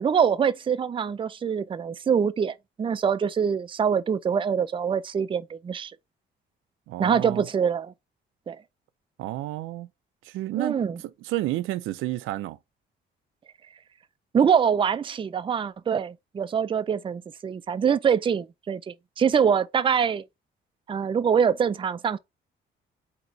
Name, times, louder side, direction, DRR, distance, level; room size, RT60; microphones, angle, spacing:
voice 1, 0.0-5.9 7.0-7.9 8.5-8.6 10.6-11.0 14.3-20.2 20.9-22.2, right 7 dB, 25° right, 0.4 m, -24 dB
voice 2, 6.9-7.4 9.2-9.9 10.2-10.8 11.2-12.6, right 16 dB, 90° right, 0.5 m, -30 dB
4.0 x 2.9 x 4.4 m
cardioid pair, 90°, 20 cm